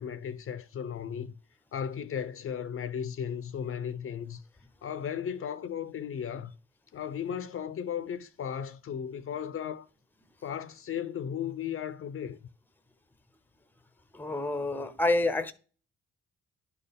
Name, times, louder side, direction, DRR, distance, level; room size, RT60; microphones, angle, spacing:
voice 1, 0.0-1.3 1.7-4.4 4.8-6.5 6.9-9.9 10.4-12.4, left 8 dB, 45° left, 0.6 m, -35 dB
voice 2, 14.1-15.5, left 2 dB, 5° left, 0.7 m, -28 dB
10.5 x 4.5 x 3.5 m
cardioid pair, 90°, 30 cm